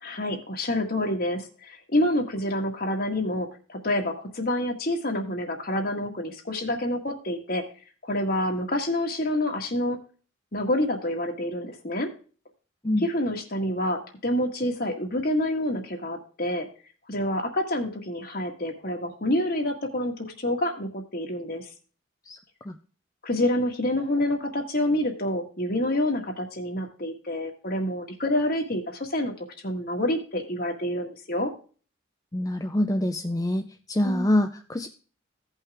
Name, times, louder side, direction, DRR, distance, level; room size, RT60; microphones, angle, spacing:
voice 1, 0.0-7.6 8.0-10.0 10.5-12.1 13.0-16.7 17.1-21.7 23.2-31.5 34.0-34.3, left 1 dB, 50° left, 2 dB, 1.7 m, -27 dB
voice 2, 32.3-34.9, left 1 dB, 20° left, 5 dB, 0.5 m, -25 dB
16.0 x 5.7 x 3.5 m, 0.39 s
head